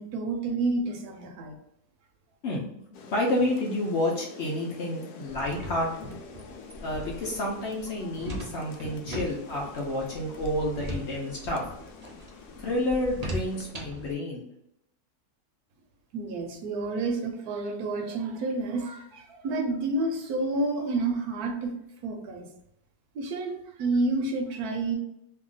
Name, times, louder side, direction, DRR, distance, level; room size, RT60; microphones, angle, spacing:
voice 1, 0.0-1.6 16.1-21.7 22.0-22.5 23.1-25.0, right 2 dB, 75° right, 3 dB, 1.1 m, -29 dB
voice 2, 2.4-5.9 6.8-11.6 12.6-14.5, left 1 dB, 60° left, -2 dB, 0.8 m, -30 dB
Rain, 2.9-13.7, left 5 dB, 80° left, 1.1 m, -47 dB
sound 1, 5.3-14.1, right 1 dB, 50° right, 0.4 m, -39 dB
2.8 x 2.4 x 3.8 m, 0.79 s
omnidirectional pair, 1.6 m